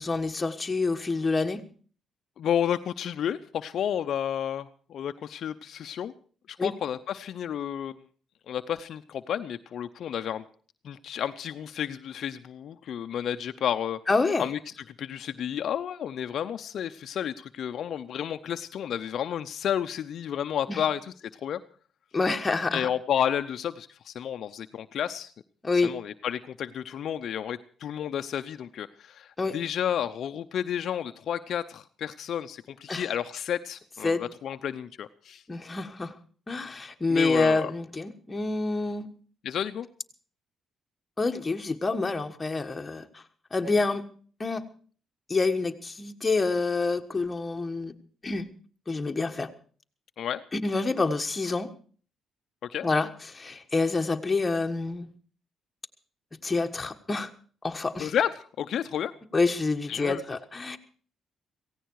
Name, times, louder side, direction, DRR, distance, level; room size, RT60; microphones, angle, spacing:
voice 1, 0.0-1.6 6.6-6.7 14.1-14.4 20.7-20.8 22.1-22.9 25.6-25.9 29.4-29.6 32.9-33.0 34.0-34.2 35.5-36.1 36.5-39.1 41.2-43.2 43.5-44.0 44.4-44.6 45.3-47.9 48.2-48.5 48.9-49.5 50.5-51.7 52.8-55.1 56.3-57.3 57.6-58.1 59.3-60.8, left 3 dB, 25° left, 5 dB, 1.5 m, -27 dB
voice 2, 2.4-6.1 6.5-8.0 8.5-10.4 10.8-14.0 14.4-14.6 15.0-21.6 22.7-25.3 25.8-35.4 36.6-36.7 37.1-37.7 39.4-39.9 50.2-50.4 52.6-52.9 58.0-59.1 59.9-60.2, left 9 dB, 65° left, 9 dB, 0.6 m, -31 dB
17.0 x 16.0 x 4.7 m, 0.43 s
cardioid pair, 90°, 0 cm